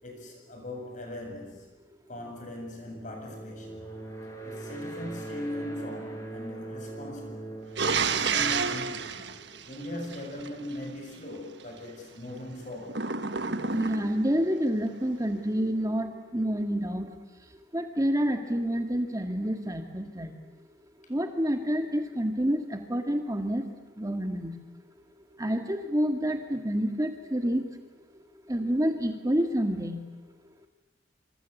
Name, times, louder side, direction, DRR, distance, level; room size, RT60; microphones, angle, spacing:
voice 1, 0.0-1.7 2.1-3.8 4.4-7.5 7.9-9.2 9.7-13.1, left 1 dB, 45° left, 3 dB, 7.8 m, -39 dB
sound 1, 3.0-9.7, right 2 dB, 15° left, 5.7 m, -41 dB
sound 2, 7.8-10.5 12.9-14.3, right 5 dB, 65° right, 1.5 m, -30 dB
voice 2, 13.7-17.1 17.7-20.3 21.1-23.6 24.0-24.5 25.4-27.6 28.5-30.0, equal, 20° right, 5 dB, 1.9 m, -28 dB
27.0 x 26.5 x 8.4 m, 1.2 s
head